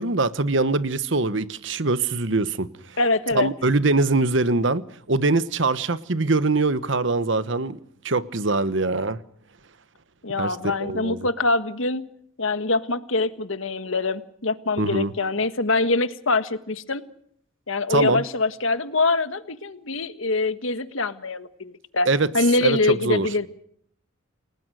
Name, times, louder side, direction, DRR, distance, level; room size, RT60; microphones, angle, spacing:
voice 1, 0.0-2.7 3.3-7.8 8.0-9.2 10.4-11.3 14.8-15.1 17.9-18.2 22.1-22.3 22.6-23.3, right 3 dB, 60° right, 1.1 m, -23 dB
voice 2, 3.0-3.5 10.2-12.0 12.4-17.0 17.7-22.1 22.3-23.5, left 3 dB, 75° left, 1.5 m, -24 dB
29.0 x 19.0 x 6.3 m
head